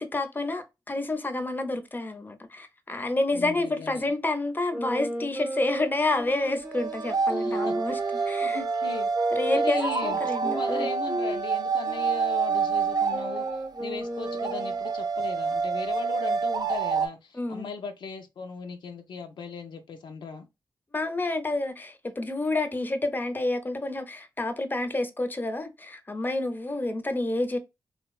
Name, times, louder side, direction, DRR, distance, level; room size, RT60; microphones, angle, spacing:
voice 1, 0.0-8.0 8.3-8.6 9.3-10.9 17.3-17.7 20.9-27.6, left 2 dB, 25° left, 0.5 m, -29 dB
voice 2, 3.3-4.1 7.3-7.7 8.1-9.1 9.5-13.5 13.8-20.5, left 5 dB, 85° left, 0.4 m, -38 dB
sound 1, 4.7-11.4 11.9-14.8, right 1 dB, 15° right, 0.7 m, -34 dB
sound 2, 6.1-17.1, right 5 dB, 60° right, 0.3 m, -28 dB
2.9 x 2.0 x 2.3 m
cardioid pair, 55°, 8 cm